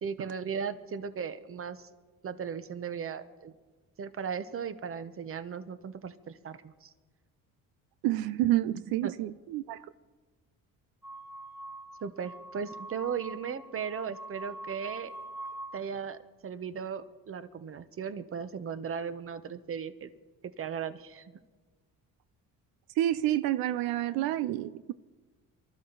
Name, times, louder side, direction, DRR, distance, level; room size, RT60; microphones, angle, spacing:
voice 1, 0.0-1.9 2.2-3.5 4.0-6.9 9.0-9.1 12.0-15.1 15.7-20.1 20.4-21.4, right 6 dB, 40° right, 0.9 m, -37 dB
voice 2, 8.0-9.8 23.0-24.9, right 14 dB, 90° right, 0.5 m, -29 dB
sound 1, 11.0-15.8, right 2 dB, 5° right, 0.8 m, -44 dB
23.5 x 13.0 x 3.9 m
cardioid pair, 85°, 34 cm